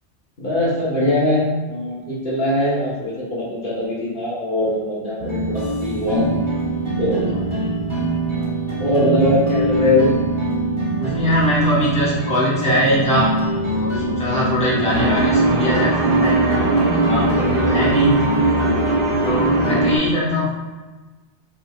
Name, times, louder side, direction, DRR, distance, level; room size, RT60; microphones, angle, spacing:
voice 1, 0.4-6.3 7.0-7.2 8.8-10.1, left 1 dB, 50° left, -8 dB, 1.4 m, -21 dB
sound 1, 5.2-20.0, right 1 dB, 30° right, 1.0 m, -24 dB
voice 2, 11.0-13.3 13.7-18.3 19.2-20.5, equal, 5° left, -9 dB, 1.2 m, -21 dB
sound 2, 14.9-20.0, right 2 dB, 60° right, 0.9 m, -20 dB
5.0 x 3.9 x 2.4 m, 1.2 s
omnidirectional pair, 1.1 m